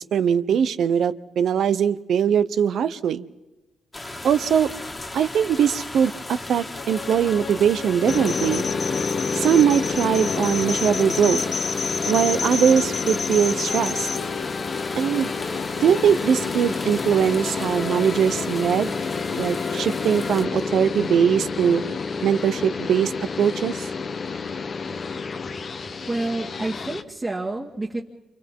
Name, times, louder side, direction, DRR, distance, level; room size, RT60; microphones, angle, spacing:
voice 1, 0.0-3.2 4.2-4.7 5.1-8.7 9.3-11.4 12.0-14.1 15.0-15.3 15.8-19.0 19.3-21.8 22.2-23.1 23.4-23.7, right 8 dB, 70° right, 12 dB, 0.9 m, -21 dB
sound 1, 3.9-20.4, left 2 dB, 20° left, 1.8 m, -36 dB
sound 2, 6.7-20.5, left 7 dB, 70° left, 1.2 m, -38 dB
sound 3, 8.1-27.0, left 5 dB, 40° left, 0.9 m, -28 dB
voice 2, 26.1-28.0, right 2 dB, 25° right, -3 dB, 2.0 m, -28 dB
29.0 x 28.0 x 3.8 m, 1.0 s
cardioid pair, 115°, 0 cm